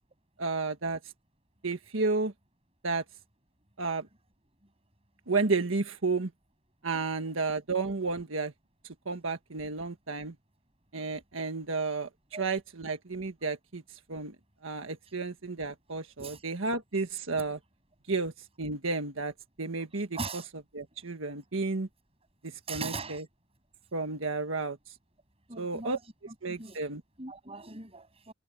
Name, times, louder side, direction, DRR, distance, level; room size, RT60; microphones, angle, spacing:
voice 1, 0.4-1.0 1.6-2.3 2.8-3.0 3.8-4.1 5.3-6.3 6.8-8.5 9.0-10.3 10.9-12.1 12.4-13.8 14.1-14.3 14.6-17.6 18.1-18.3 18.6-19.3 19.6-20.1 20.7-21.9 22.4-23.2 23.9-24.9 25.6-26.0 26.4-27.0, right 3 dB, 85° right, 1.6 m, -32 dB
voice 2, 6.9-7.3 12.3-12.4 16.2-16.4 20.1-20.5 22.7-23.2 25.5-26.0 26.3-26.8 27.2-28.3, right 3 dB, 30° right, 7.8 m, -40 dB
head